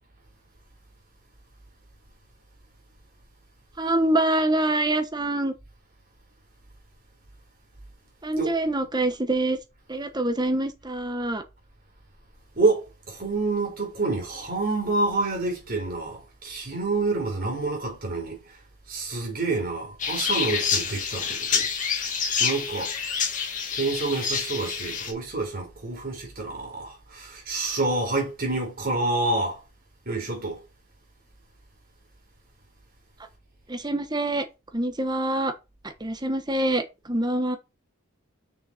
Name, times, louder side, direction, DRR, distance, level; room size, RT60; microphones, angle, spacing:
voice 1, 3.8-5.5 8.2-9.6 9.9-11.4 33.7-34.4 34.7-35.5 36.0-37.6, right 1 dB, 20° right, 1.1 m, -25 dB
voice 2, 12.6-18.4 18.9-21.7 22.4-22.9 23.8-29.6 30.1-30.6, right 3 dB, 40° right, 4.2 m, -28 dB
sound 1, 20.0-25.1, left 6 dB, 35° left, 2.0 m, -27 dB
6.5 x 6.2 x 4.3 m
head